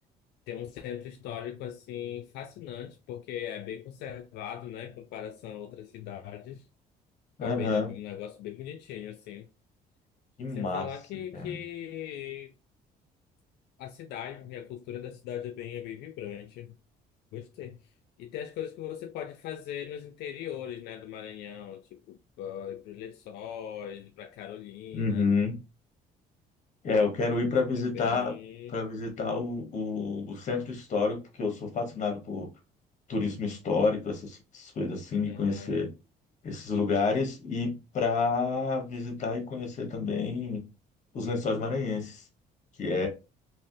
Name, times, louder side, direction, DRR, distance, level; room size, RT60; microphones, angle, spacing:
voice 1, 0.5-6.7 7.4-9.5 10.5-12.5 13.8-16.7 17.3-17.8 18.2-25.3 27.7-28.8 35.3-35.9, left 10 dB, 75° left, 0.4 m, -39 dB
voice 2, 7.4-7.9 10.4-10.9 11.3-11.6 24.9-25.6 26.8-28.3 28.7-32.5 33.1-35.9 36.4-40.6 41.1-42.2 42.8-43.1, left 4 dB, 45° left, 1.3 m, -29 dB
3.3 x 2.9 x 2.7 m
cardioid pair, 110°, 17 cm